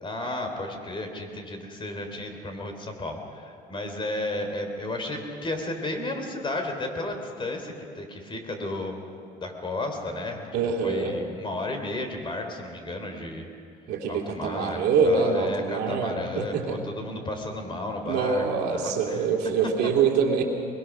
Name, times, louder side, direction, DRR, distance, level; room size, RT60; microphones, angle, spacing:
voice 1, 0.0-9.0 9.4-10.5 10.8-13.5 14.1-18.4 18.7-19.3, left 2 dB, 30° left, 4 dB, 3.3 m, -33 dB
voice 2, 10.5-11.2 13.9-16.8 18.1-20.4, right 5 dB, 80° right, 1 dB, 2.7 m, -25 dB
21.5 x 21.5 x 6.1 m, 2.4 s
cardioid pair, 110°, 17 cm